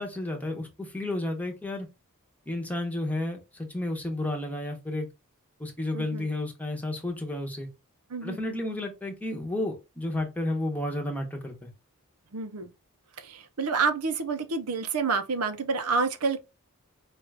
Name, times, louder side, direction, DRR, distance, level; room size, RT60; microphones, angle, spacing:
voice 1, 0.0-1.9 2.5-5.1 5.6-7.7 8.2-11.7, left 1 dB, 5° left, 0.9 m, -32 dB
voice 2, 5.9-6.2 8.1-8.4 12.3-12.7 13.2-16.4, right 4 dB, 85° right, 0.6 m, -28 dB
5.0 x 2.4 x 3.3 m
head